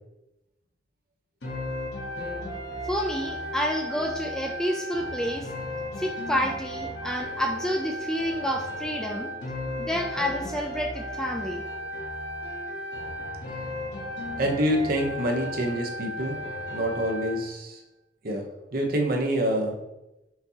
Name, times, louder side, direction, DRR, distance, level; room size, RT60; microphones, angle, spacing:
sound 1, 1.4-17.4, equal, 70° left, 1.1 m, -35 dB
voice 1, 2.9-5.5 6.0-9.3 9.8-11.6, equal, 5° left, 2 dB, 0.3 m, -29 dB
voice 2, 14.4-16.3 16.7-17.8 18.2-18.4 18.7-19.7, equal, 55° right, 3 dB, 0.7 m, -26 dB
5.8 x 2.7 x 2.8 m, 0.94 s
head